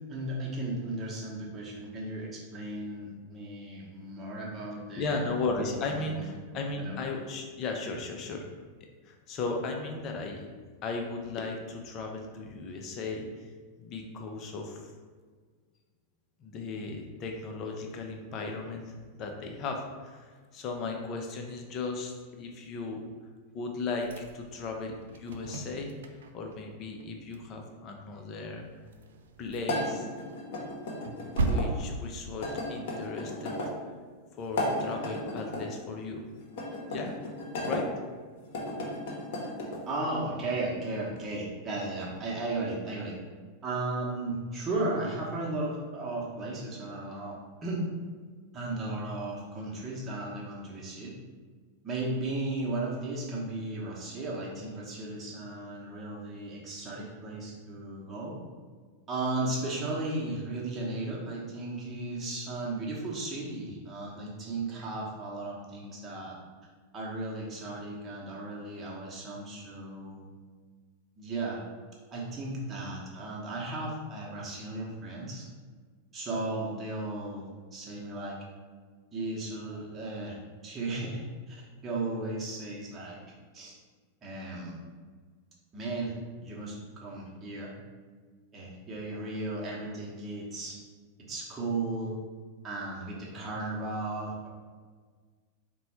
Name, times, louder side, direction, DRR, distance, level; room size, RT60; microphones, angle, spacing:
voice 1, 0.1-5.2 5.9-6.3 6.8-7.0 39.9-43.2 43.6-47.9 48.5-51.1 51.8-58.4 59.1-66.3 66.9-70.2 71.2-71.6 72.1-75.5 76.1-78.4 79.1-80.4 80.6-81.2 81.5-83.2 83.5-83.7 84.2-84.8 85.7-86.1 86.4-87.7 88.5-90.8 91.3-92.2 92.6-94.3, right 2 dB, 20° right, -5 dB, 1.0 m, -35 dB
voice 2, 5.0-8.5 9.0-10.5 10.8-13.3 13.8-14.9 16.4-23.0 23.5-24.1 24.3-26.0 26.3-28.6 29.4-30.1 31.4-33.5 34.4-36.2 36.9-37.1 37.6-37.9, left 3 dB, 35° left, 2 dB, 0.6 m, -36 dB
sound 1, 24.0-26.5 26.8-27.1 27.3-27.4 27.7-27.8 28.5-29.9 30.3-32.7, right 3 dB, 65° right, 0.3 m, -35 dB
sound 2, 29.6-31.7 32.4-33.7 34.4-35.6 36.5-37.8 38.4-39.8, left 1 dB, 50° left, 0.9 m, -34 dB
4.2 x 2.3 x 4.3 m, 1.5 s
figure-of-eight pair, 90°, 0 cm